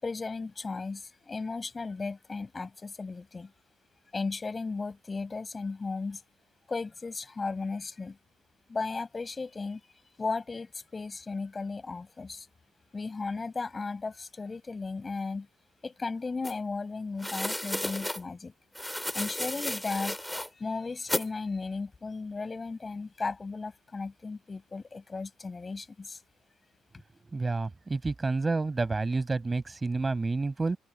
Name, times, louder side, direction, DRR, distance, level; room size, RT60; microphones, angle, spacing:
voice 1, 0.0-3.5 4.1-6.2 6.7-8.2 8.7-9.8 10.2-12.5 12.9-15.5 15.8-18.5 19.1-20.2 20.5-26.2, left 4 dB, 30° left, 6.3 m, -35 dB
sound 1, 16.4-16.5 17.2-18.2 18.7-20.5 21.1-21.3, left 1 dB, 5° left, 4.1 m, -33 dB
voice 2, 27.3-30.8, right 3 dB, 25° right, 6.1 m, -29 dB
open air
cardioid pair, 90°, 0 cm